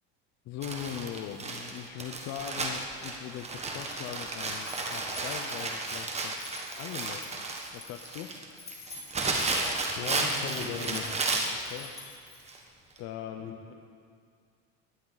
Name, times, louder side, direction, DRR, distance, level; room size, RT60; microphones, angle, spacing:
voice 1, 0.4-6.3 6.8-7.3 7.7-8.3 11.5-11.9 13.0-13.7, left 10 dB, 55° left, 5 dB, 0.8 m, -40 dB
Crumpling crinkling, 0.6-11.6 12.5-12.6 13.0-13.1, right 3 dB, 20° right, 1.4 m, -33 dB
sound 1, 4.3-12.6, left 3 dB, 20° left, 3.0 m, -48 dB
voice 2, 9.9-11.1 13.4-13.5, left 5 dB, 75° left, 2 dB, 2.1 m, -36 dB
19.0 x 11.5 x 4.1 m, 2.3 s
cardioid pair, 135°, 32 cm